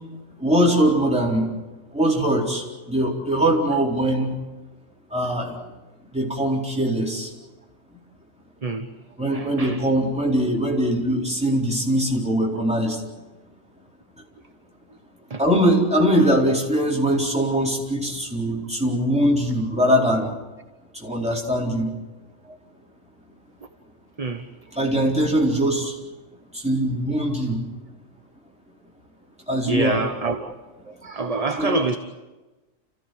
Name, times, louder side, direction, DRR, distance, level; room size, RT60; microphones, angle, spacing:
voice 1, 0.4-1.5 1.9-4.4 5.1-5.5 6.1-7.3 9.2-13.0 15.4-20.4 20.9-21.9 24.7-25.9 26.5-27.6 29.5-30.0 31.6-31.7, right 1 dB, 5° right, 4.2 m, -21 dB
voice 2, 9.3-9.8 15.3-15.4 22.5-22.6 24.2-24.5 29.7-30.5 30.8-32.0, right 3 dB, 30° right, 1.0 m, -26 dB
29.5 x 15.5 x 7.9 m
omnidirectional pair, 1.3 m